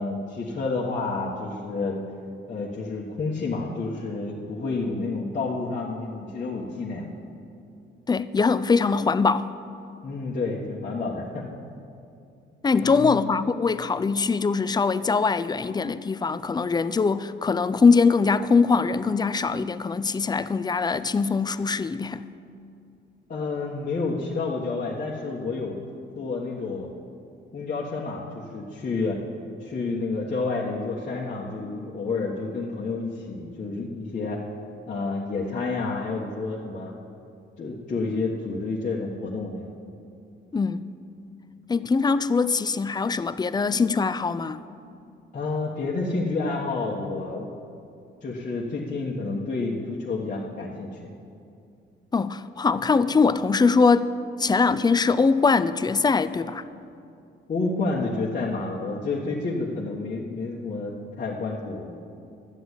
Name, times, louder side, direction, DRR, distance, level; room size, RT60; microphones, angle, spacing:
voice 1, 0.0-2.0 2.5-7.1 10.0-11.4 12.8-13.2 23.3-25.8 26.2-26.9 27.5-29.2 29.6-34.4 34.9-36.9 37.6-39.7 45.3-47.5 48.2-51.0 57.5-61.9, left 3 dB, 40° left, 1.4 m, -29 dB
voice 2, 8.1-9.5 12.6-22.2 40.5-40.8 41.7-44.6 52.1-56.6, left 4 dB, 20° left, 0.5 m, -22 dB
12.5 x 7.9 x 8.1 m
cardioid pair, 90°, 20 cm